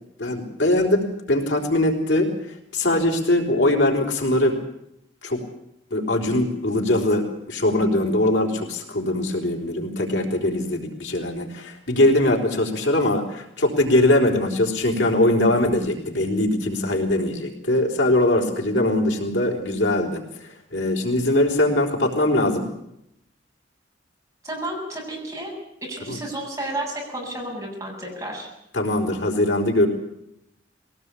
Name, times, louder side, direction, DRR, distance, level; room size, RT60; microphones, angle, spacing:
voice 1, 0.2-2.3 2.7-4.6 5.2-5.4 5.9-22.7 26.1-26.2 28.7-29.9, left 1 dB, 75° left, 1 dB, 4.1 m, -21 dB
voice 2, 24.4-25.5 25.9-28.5, right 1 dB, 15° right, -2 dB, 7.5 m, -31 dB
21.5 x 18.0 x 8.4 m, 0.81 s
head